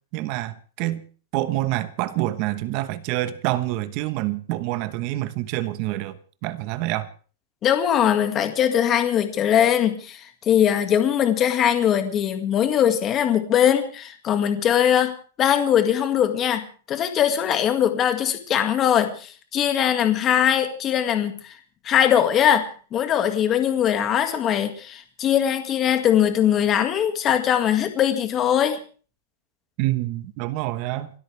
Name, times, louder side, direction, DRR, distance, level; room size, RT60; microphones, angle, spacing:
voice 1, 0.1-1.0 1.3-7.1 29.8-31.1, right 16 dB, 35° right, 1.2 m, -27 dB
voice 2, 7.6-21.5 21.8-28.8, left 9 dB, 25° left, 1.9 m, -21 dB
30.0 x 13.0 x 3.4 m
supercardioid pair, 160°, 0 cm